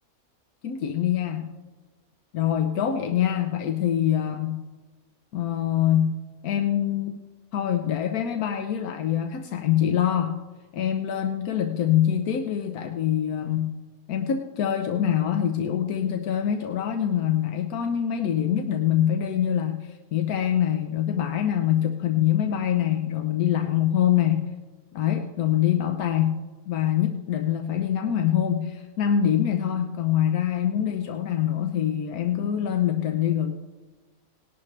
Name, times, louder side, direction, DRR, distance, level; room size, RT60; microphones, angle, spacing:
voice 1, 0.6-1.5 2.3-4.6 5.3-7.2 7.5-10.4 10.7-13.7 14.1-24.4 24.9-26.4 26.7-33.5, left 10 dB, 90° left, 5 dB, 1.2 m, -24 dB
18.5 x 11.5 x 3.3 m, 1.3 s
omnidirectional pair, 1.5 m